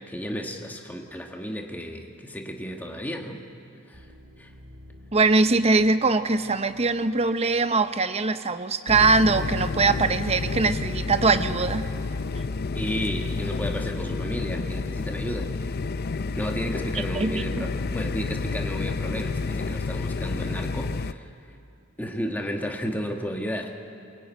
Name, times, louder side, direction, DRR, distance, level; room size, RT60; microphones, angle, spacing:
voice 1, 0.0-3.4 3.9-4.0 4.4-4.5 12.7-15.5 16.4-21.3 22.0-23.7, equal, 10° left, 2 dB, 1.5 m, -33 dB
sound 1, 3.9-8.3 8.6-8.8, equal, 65° right, 3.4 m, -51 dB
voice 2, 5.1-11.9 16.9-17.7, right 3 dB, 30° right, 10 dB, 0.8 m, -22 dB
sound 2, 8.9-21.1, left 4 dB, 45° left, 0.5 m, -30 dB
23.0 x 21.5 x 9.2 m, 2.5 s
head